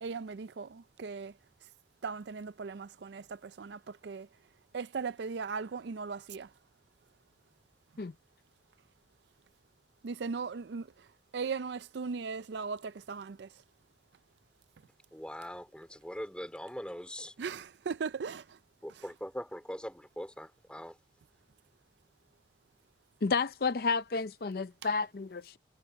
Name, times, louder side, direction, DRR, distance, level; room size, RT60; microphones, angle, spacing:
voice 1, 0.0-1.3 2.0-4.3 4.7-6.5 10.0-11.1 11.3-13.6 17.4-18.6, right 5 dB, 70° right, 0.4 m, -38 dB
voice 2, 15.1-17.3 18.8-21.0, equal, 5° left, 4.3 m, -42 dB
voice 3, 23.2-25.6, left 4 dB, 55° left, 0.5 m, -31 dB
head